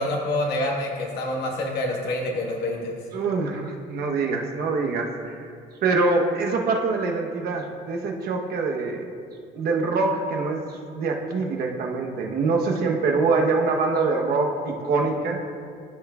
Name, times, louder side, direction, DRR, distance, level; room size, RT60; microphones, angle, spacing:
voice 1, 0.0-3.0, left 1 dB, 75° left, 0 dB, 1.5 m, -27 dB
voice 2, 3.1-5.5 5.8-9.0 9.5-15.4, right 3 dB, 65° right, 1 dB, 1.0 m, -24 dB
14.0 x 5.6 x 2.4 m, 2.3 s
cardioid pair, 110°, 17 cm